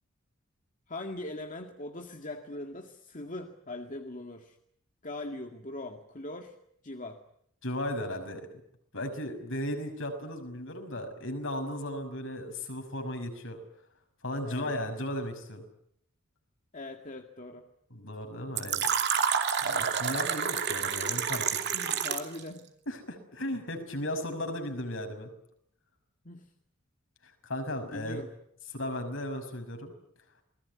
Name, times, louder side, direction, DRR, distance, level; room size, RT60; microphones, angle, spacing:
voice 1, 0.9-4.6 5.0-6.6 6.8-7.2 14.4-14.8 16.7-17.7 21.7-22.7 26.2-26.5 27.9-28.3, left 2 dB, 35° left, 4 dB, 2.0 m, -41 dB
voice 2, 7.6-8.5 8.9-13.6 14.2-15.6 17.9-18.9 19.6-21.4 22.9-25.3 27.4-28.2 28.7-29.9, left 1 dB, 60° left, 6 dB, 6.0 m, -35 dB
Fill (with liquid), 18.6-22.4, right 7 dB, 50° right, 2.7 m, -29 dB
28.5 x 20.5 x 9.5 m, 0.71 s
head